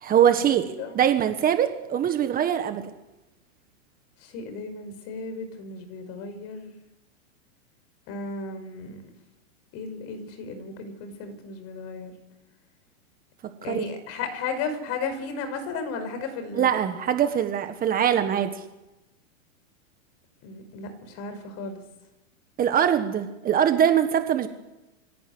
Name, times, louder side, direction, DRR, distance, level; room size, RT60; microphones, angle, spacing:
voice 1, 0.0-2.9 13.6-13.8 16.5-18.6 22.6-24.5, right 9 dB, 20° right, 8 dB, 1.6 m, -23 dB
voice 2, 4.2-6.7 8.1-9.0 9.7-12.1 13.6-16.7 20.4-21.8, left 4 dB, 40° left, 9 dB, 5.4 m, -34 dB
24.5 x 17.0 x 9.7 m, 1.0 s
hypercardioid pair, 135°, 39 cm